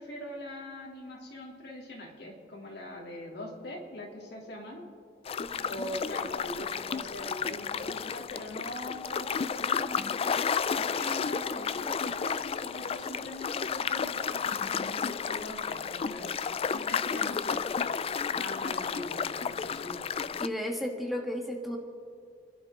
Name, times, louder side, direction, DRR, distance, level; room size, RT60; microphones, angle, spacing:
voice 1, 0.0-4.8 5.6-10.2 10.8-16.4 16.7-17.7 18.3-20.0, left 1 dB, 65° left, -1 dB, 3.0 m, -42 dB
sound 1, 5.2-20.5, left 6 dB, 35° left, 0.3 m, -32 dB
voice 2, 20.4-21.8, left 1 dB, ahead, 0 dB, 1.4 m, -33 dB
29.0 x 11.0 x 3.7 m, 2.3 s
head